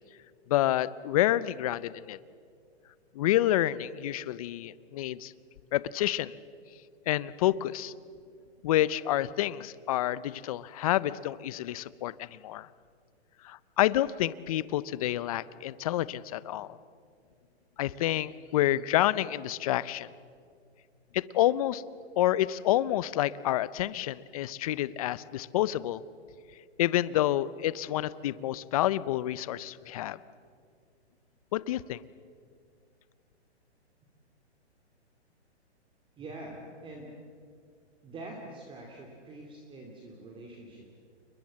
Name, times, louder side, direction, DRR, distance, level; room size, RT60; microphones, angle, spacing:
voice 1, 0.5-2.2 3.1-5.3 5.7-6.4 7.1-7.9 8.6-12.7 13.4-16.8 17.8-20.1 21.1-21.8 22.2-26.0 26.8-30.2 31.5-32.0, left 13 dB, 35° left, 19 dB, 0.6 m, -28 dB
voice 2, 36.2-37.1 38.0-40.9, right 2 dB, 15° right, 0 dB, 2.5 m, -45 dB
29.5 x 21.5 x 7.6 m, 2.2 s
hypercardioid pair, 150°, 34 cm